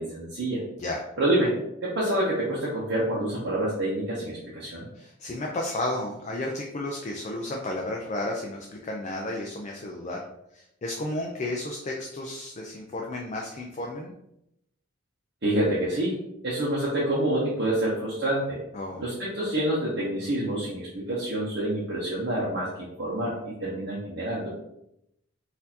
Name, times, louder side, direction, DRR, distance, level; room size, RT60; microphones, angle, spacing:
voice 1, 0.0-0.6 1.2-1.5 1.8-4.9 15.4-16.2 16.4-18.6 19.0-24.5, right 1 dB, 55° right, -7 dB, 0.8 m, -27 dB
voice 2, 4.9-10.2 10.5-14.1 18.7-19.0, left 1 dB, 35° left, 0 dB, 0.4 m, -33 dB
4.1 x 2.6 x 2.8 m, 0.81 s
head